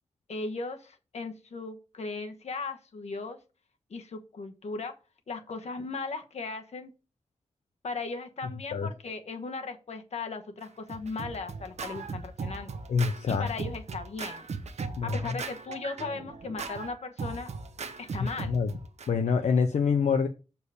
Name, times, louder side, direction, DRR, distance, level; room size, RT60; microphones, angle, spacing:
voice 1, 0.3-3.4 3.9-4.9 5.3-6.9 7.8-12.8 13.3-14.5 15.0-17.5 18.0-18.6, left 4 dB, 70° left, 6 dB, 1.1 m, -37 dB
Scratching (performance technique), 10.6-19.1, right 4 dB, 75° right, 0.9 m, -38 dB
voice 2, 12.9-13.5 15.0-15.2 18.5-18.7 19.1-20.3, left 5 dB, 90° left, 7 dB, 0.6 m, -25 dB
6.8 x 4.6 x 4.9 m, 0.32 s
wide cardioid pair, 125°, 12 cm